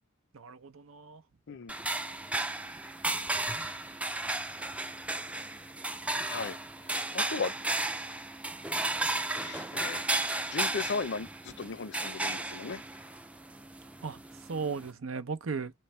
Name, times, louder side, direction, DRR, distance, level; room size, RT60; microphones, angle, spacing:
voice 1, 0.3-1.2 14.0-14.2 14.5-15.7, right 5 dB, 90° right, 0.7 m, -36 dB
sound 1, 1.7-14.9, right 2 dB, 5° right, 0.3 m, -34 dB
voice 2, 6.8-7.5 9.4-12.8, left 5 dB, 60° left, 0.6 m, -37 dB
3.2 x 3.1 x 4.4 m
head